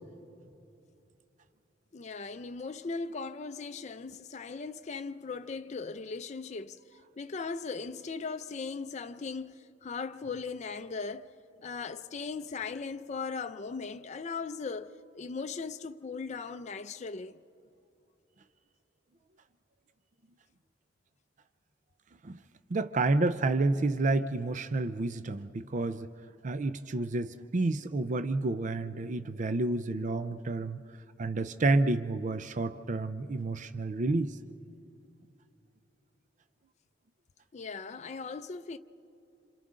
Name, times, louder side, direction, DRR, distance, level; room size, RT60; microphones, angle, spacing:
voice 1, 1.9-6.8 7.2-11.3 11.6-17.4 37.5-38.8, left 4 dB, 40° left, 0.4 m, -38 dB
voice 2, 22.7-26.1 26.4-30.8 31.2-34.4, right 2 dB, 45° right, 0.5 m, -29 dB
27.5 x 27.5 x 3.7 m
head